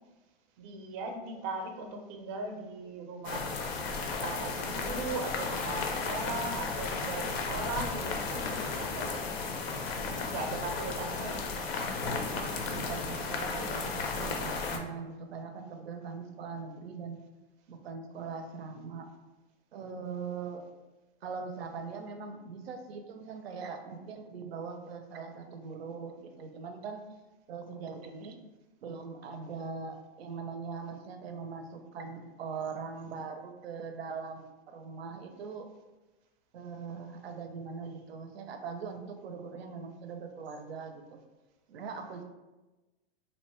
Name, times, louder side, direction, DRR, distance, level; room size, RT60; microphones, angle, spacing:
voice 1, 0.6-3.6 4.2-9.2 10.0-11.4, right 3 dB, 35° right, 4 dB, 0.4 m, -38 dB
sound 1, 3.2-14.8, left 4 dB, 80° left, 0.5 m, -34 dB
voice 2, 10.8-11.3 12.5-17.2 17.7-19.1 19.7-20.6 21.2-27.0 27.5-28.4 28.8-35.7 36.5-41.2 41.7-42.2, right 5 dB, 90° right, 6 dB, 0.5 m, -41 dB
2.8 x 2.2 x 2.9 m, 1.1 s
hypercardioid pair, 120°, 30 cm